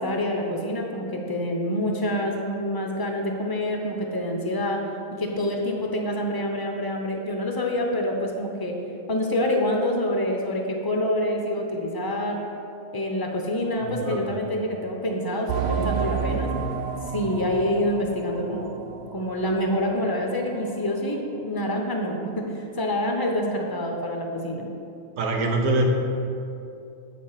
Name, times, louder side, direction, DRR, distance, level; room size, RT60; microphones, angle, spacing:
voice 1, 0.0-4.8 5.2-8.7 9.1-12.4 12.9-16.5 17.1-18.7 19.1-24.7, left 1 dB, 25° left, 1 dB, 0.5 m, -26 dB
voice 2, 13.8-14.4 25.2-25.9, right 2 dB, 90° right, 2 dB, 1.4 m, -24 dB
sound 1, 15.5-19.8 20.1-20.2 20.8-20.9, right 6 dB, 65° right, 0.6 m, -30 dB
8.4 x 4.2 x 5.6 m, 2.6 s
omnidirectional pair, 1.5 m